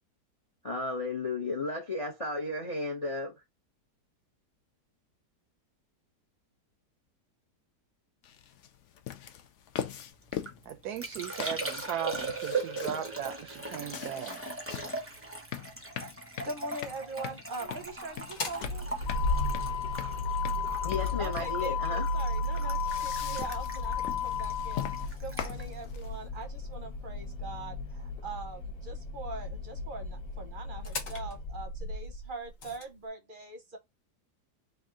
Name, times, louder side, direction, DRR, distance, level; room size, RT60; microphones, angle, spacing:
voice 1, 0.6-3.3 20.8-22.1, left 2 dB, 35° left, 0.5 m, -33 dB
sound 1, 8.2-26.3, left 10 dB, 75° left, 0.7 m, -42 dB
Liquid, 10.2-26.8 27.1-27.6, right 3 dB, 15° right, 0.4 m, -40 dB
voice 2, 10.7-14.4, right 9 dB, 75° right, 1.0 m, -37 dB
voice 3, 16.4-18.9 21.2-24.8 25.2-33.8, right 3 dB, 40° right, 0.8 m, -42 dB
Motor vehicle (road), 18.1-32.8, left 3 dB, 55° left, 1.3 m, -34 dB
3.5 x 2.7 x 3.6 m
omnidirectional pair, 1.8 m